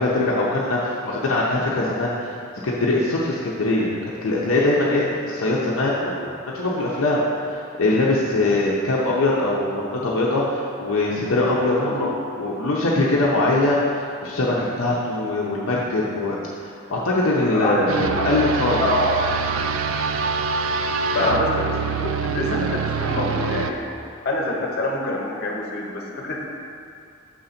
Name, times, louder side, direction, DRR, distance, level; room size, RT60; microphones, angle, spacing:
voice 1, 0.0-2.4 2.6-12.1 12.4-18.8 21.2-21.4, left 2 dB, 70° left, -5 dB, 0.7 m, -22 dB
voice 2, 17.5-17.8 18.1-18.3 18.6-19.2 21.1-23.8 24.2-26.4, left 1 dB, 50° left, -2 dB, 1.0 m, -26 dB
sound 1, 17.9-23.7, right 4 dB, 70° right, 0.4 m, -25 dB
6.4 x 3.9 x 5.8 m, 2.5 s
head